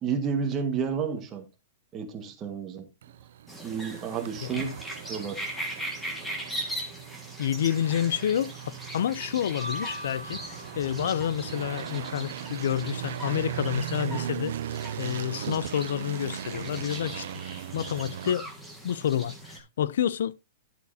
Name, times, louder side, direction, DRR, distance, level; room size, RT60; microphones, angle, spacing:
voice 1, 0.0-1.5 1.9-2.8 3.6-4.7 5.1-5.4, right 6 dB, 20° right, 1.6 m, -30 dB
sound 1, 3.0-18.3, right 10 dB, 65° right, 0.5 m, -38 dB
sound 2, 3.5-19.6, right 1 dB, 5° left, 1.6 m, -40 dB
voice 2, 4.4-4.7 7.4-14.5 15.0-17.3 17.7-18.5 18.8-20.3, left 10 dB, 70° left, 0.4 m, -29 dB
sound 3, 9.6-11.7, left 1 dB, 35° left, 4.7 m, -41 dB
10.5 x 8.2 x 2.7 m
hypercardioid pair, 165°, 0 cm